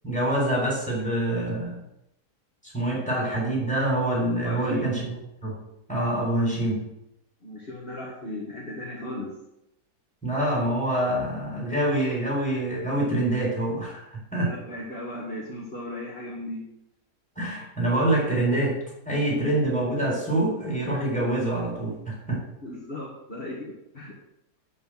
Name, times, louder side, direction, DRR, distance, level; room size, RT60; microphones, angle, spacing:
voice 1, 0.0-1.8 2.7-5.1 5.4-5.6 5.9-6.8 10.2-14.5 17.4-18.8 19.1-22.4, right 1 dB, 5° left, -4 dB, 4.0 m, -25 dB
voice 2, 4.4-4.9 7.4-9.3 14.4-16.6 22.6-24.1, left 1 dB, 35° left, -4 dB, 2.0 m, -36 dB
12.0 x 4.3 x 7.4 m, 0.82 s
omnidirectional pair, 1.7 m